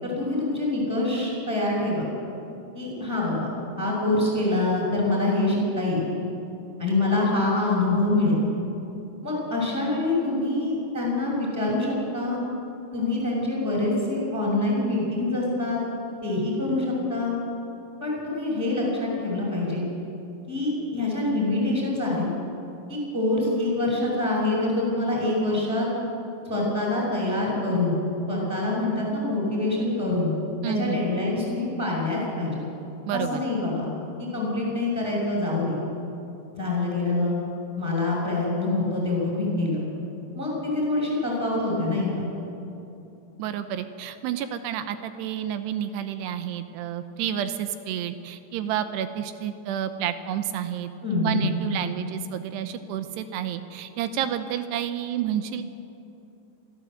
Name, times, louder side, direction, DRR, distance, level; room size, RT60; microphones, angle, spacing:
voice 1, 0.0-2.1 2.7-3.5 3.8-6.0 6.8-8.4 9.2-12.4 12.9-15.8 16.2-17.4 18.0-19.8 20.5-22.3 22.9-25.9 26.5-28.0 28.3-30.3 30.6-32.6 33.1-33.9 34.3-35.8 36.5-37.4 37.8-39.8 40.3-42.1 51.0-51.5, left 2 dB, 10° right, -4 dB, 5.7 m, -25 dB
voice 2, 30.6-31.0 33.0-33.4 43.4-55.6, right 10 dB, 75° right, 10 dB, 2.6 m, -30 dB
24.5 x 14.5 x 7.8 m, 2.8 s
omnidirectional pair, 5.5 m